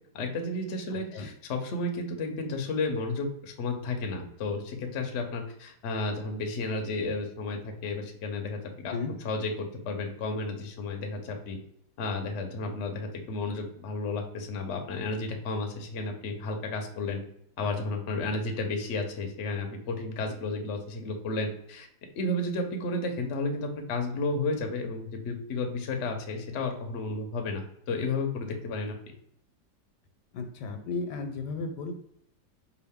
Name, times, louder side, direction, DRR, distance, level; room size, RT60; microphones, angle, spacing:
voice 1, 0.1-8.9 9.2-9.5 9.8-11.6 12.0-17.2 17.6-21.9 22.2-29.0, left 3 dB, 55° left, 3 dB, 0.8 m, -32 dB
voice 2, 0.9-1.3 8.9-9.1 30.3-31.9, left 4 dB, 80° left, 6 dB, 1.3 m, -34 dB
4.7 x 2.5 x 3.5 m, 0.72 s
omnidirectional pair, 1.8 m